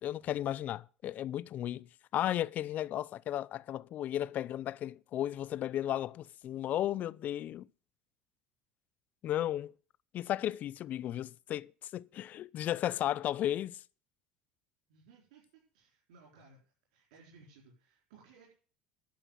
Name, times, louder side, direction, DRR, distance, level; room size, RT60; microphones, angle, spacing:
voice 1, 0.0-7.7 9.2-9.7 10.1-13.8, left 12 dB, 50° left, 0.5 m, -34 dB
voice 2, 14.9-16.6 16.9-18.5, right 4 dB, 85° right, 4.5 m, -60 dB
11.5 x 5.9 x 9.0 m
supercardioid pair, 95°, 4 cm